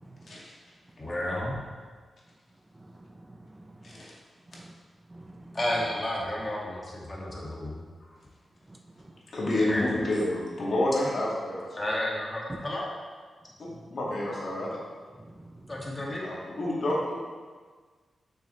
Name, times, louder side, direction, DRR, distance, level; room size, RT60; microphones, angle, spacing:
voice 1, 0.1-0.4 2.8-3.8 4.5-4.7 5.1-5.6 8.7-9.2 13.7-13.8 15.2-15.6, right 1 dB, 25° right, 4 dB, 0.6 m, -50 dB
voice 2, 1.0-1.6 5.5-7.8 9.7-10.0 11.8-12.9 15.7-16.3, left 1 dB, 30° left, -4 dB, 2.0 m, -31 dB
voice 3, 9.3-11.9 13.6-14.7 16.2-17.2, left 1 dB, 60° left, -5 dB, 2.1 m, -29 dB
6.6 x 6.2 x 3.3 m, 1.5 s
cardioid pair, 60°, 0 cm